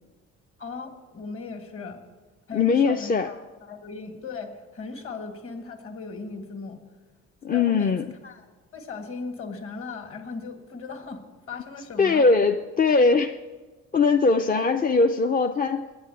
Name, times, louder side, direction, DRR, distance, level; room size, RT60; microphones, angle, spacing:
voice 1, 0.6-2.0 2.5-6.8 7.5-8.0 8.2-8.4 8.7-12.3, left 4 dB, 45° left, 7 dB, 1.9 m, -37 dB
voice 2, 2.5-3.3 7.4-8.0 12.0-13.4 13.9-15.9, left 4 dB, 30° left, 5 dB, 0.5 m, -21 dB
9.5 x 9.2 x 9.3 m, 1.3 s
cardioid pair, 90°, 30 cm